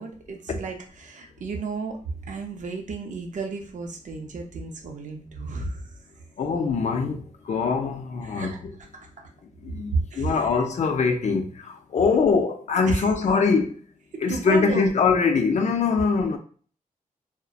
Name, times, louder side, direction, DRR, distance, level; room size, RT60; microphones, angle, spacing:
voice 1, 0.0-2.0 2.3-5.9 8.2-8.6 8.9-9.1 9.9-10.5 12.8-13.1 14.1-14.9, right 4 dB, 65° right, 0.5 m, -32 dB
voice 2, 6.4-7.2 7.5-8.5 9.6-11.4 11.9-13.7 14.2-16.4, left 5 dB, 55° left, 0.4 m, -22 dB
2.6 x 2.0 x 2.3 m
wide cardioid pair, 125°, 14 cm